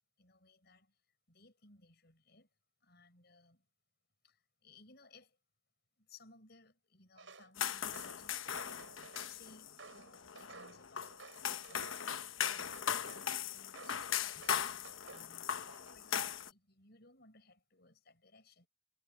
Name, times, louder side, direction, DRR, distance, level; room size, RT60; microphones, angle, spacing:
voice 1, 0.2-0.9 1.3-2.5 2.8-3.6 4.2-4.4 4.6-5.4 6.0-8.9 9.2-11.4 11.7-12.8 13.1-16.1 16.4-18.7, left 4 dB, 55° left, 7.3 m, -62 dB
Walk footsteps, 7.2-7.5 7.9-9.4 9.8-12.1 12.4-13.3 13.7-14.0 14.4-15.3 15.7-16.1, right 4 dB, 75° right, 7.7 m, -55 dB
sound 1, 7.6-16.5, left 8 dB, 90° left, 1.1 m, -39 dB
head